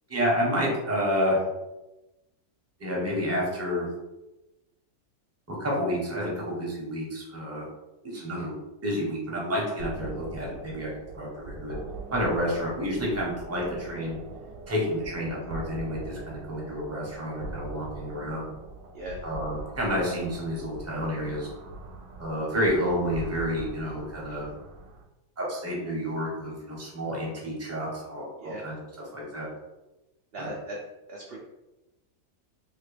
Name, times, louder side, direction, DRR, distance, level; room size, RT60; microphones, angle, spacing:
voice 1, 0.1-1.4 2.8-3.9 5.5-7.7 8.1-8.6 8.8-11.7 12.1-14.2 14.7-18.5 19.2-21.5 22.2-24.5 25.4-28.8 29.1-29.5 30.4-30.5, equal, 15° right, -3 dB, 0.6 m, -29 dB
voice 2, 8.1-8.4 12.4-12.6 18.9-19.2 28.4-28.7 30.3-30.8 31.1-31.4, right 1 dB, 60° right, -3 dB, 0.6 m, -38 dB
sound 1, 9.8-25.0, right 3 dB, 80° right, 1.1 m, -42 dB
2.9 x 2.8 x 3.2 m, 0.99 s
omnidirectional pair, 1.6 m